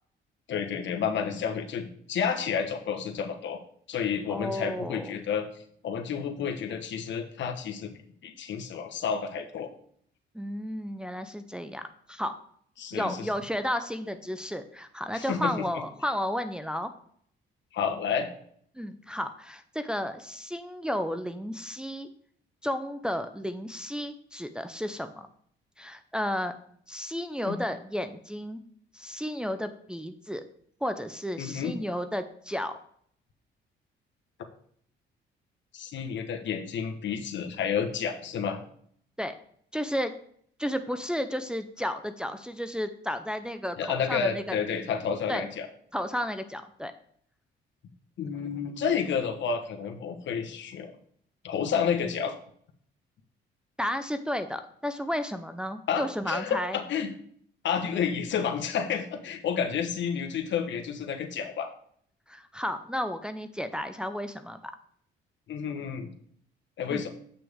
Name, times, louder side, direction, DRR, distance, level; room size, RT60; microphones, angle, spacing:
voice 1, 0.5-3.6 3.9-5.5 5.8-9.7 12.8-13.3 15.1-15.6 17.7-18.3 27.5-27.6 31.4-31.8 35.7-38.6 43.8-45.7 48.2-50.9 51.4-52.3 55.9-57.1 57.6-61.7 65.5-66.1 66.8-67.1, left 7 dB, 65° left, 4 dB, 1.2 m, -30 dB
voice 2, 4.3-5.1 10.3-11.8 12.1-12.3 12.9-16.9 18.8-22.1 22.6-25.3 25.8-26.5 26.9-28.6 28.9-30.4 30.8-32.7 39.2-39.3 39.7-40.1 40.6-44.6 45.3-45.5 45.9-46.9 53.8-56.8 62.3-64.7 66.9-67.1, equal, 5° right, 8 dB, 0.6 m, -32 dB
8.3 x 5.9 x 3.6 m, 0.62 s
cardioid pair, 90°, 20 cm